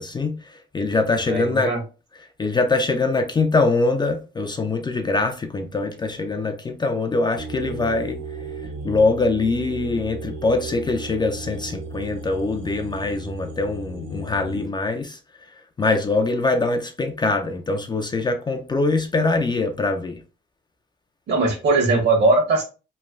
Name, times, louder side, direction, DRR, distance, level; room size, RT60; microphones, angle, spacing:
voice 1, 0.0-1.7 2.4-8.2 8.8-15.2 15.5-20.2, left 3 dB, 20° left, 0.3 m, -23 dB
voice 2, 1.3-1.8 21.3-22.6, right 3 dB, 60° right, 1.2 m, -19 dB
sound 1, 7.4-14.7, right 2 dB, 80° right, 0.6 m, -35 dB
3.1 x 2.2 x 2.3 m
cardioid pair, 90°, 20 cm